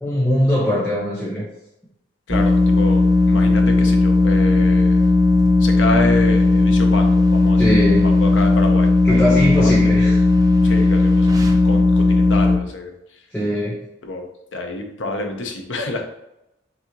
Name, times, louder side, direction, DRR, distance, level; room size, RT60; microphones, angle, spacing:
voice 1, 0.0-1.5 7.6-8.1 9.0-10.2 10.6-10.7 13.3-13.8, equal, 10° left, -7 dB, 0.9 m, -21 dB
voice 2, 2.3-5.1 5.6-10.1 10.6-13.2 14.0-16.0, left 2 dB, 90° left, 4 dB, 0.8 m, -28 dB
sound 1, 2.3-12.6, left 2 dB, 20° right, 0.6 m, -15 dB
6.2 x 2.7 x 3.0 m, 0.87 s
head